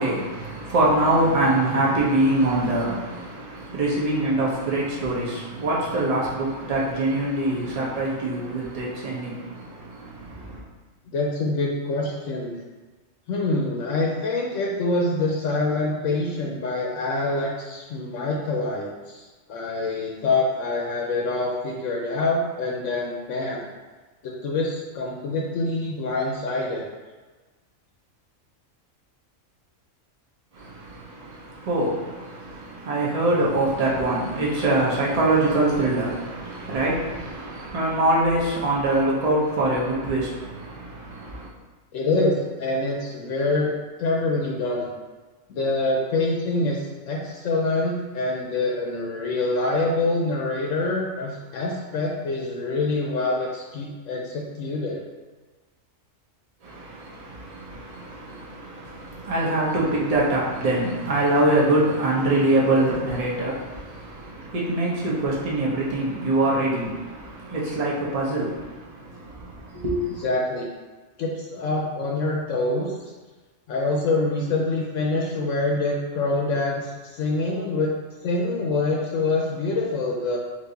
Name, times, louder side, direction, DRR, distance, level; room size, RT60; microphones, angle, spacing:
voice 1, 0.0-10.6 30.5-41.5 56.6-70.2, right 2 dB, 30° right, -5 dB, 0.9 m, -24 dB
voice 2, 11.1-12.6 13.3-19.2 19.5-23.7 24.2-26.8 41.9-43.7 44.0-44.9 45.5-55.0 70.2-70.6 71.2-72.9 73.7-77.9 78.2-80.4, left 2 dB, 75° left, -1 dB, 1.0 m, -25 dB
4.5 x 2.7 x 3.9 m, 1.3 s
omnidirectional pair, 1.3 m